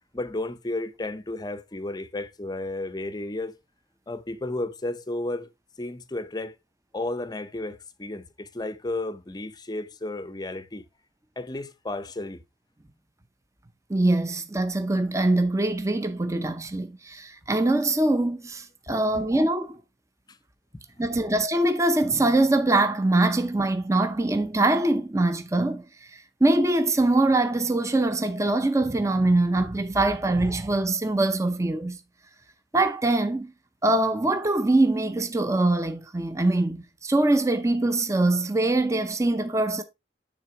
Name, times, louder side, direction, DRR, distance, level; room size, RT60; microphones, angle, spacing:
voice 1, 0.1-3.6 4.1-5.5 5.8-6.6 6.9-10.8 11.4-12.4 19.1-19.3 20.3-20.4 21.1-21.2, left 2 dB, 25° left, 0.6 m, -33 dB
voice 2, 13.9-19.8 21.0-25.8 26.1-32.0 32.7-33.5 33.8-39.8, right 2 dB, 15° right, 0.7 m, -23 dB
9.6 x 3.9 x 4.6 m
head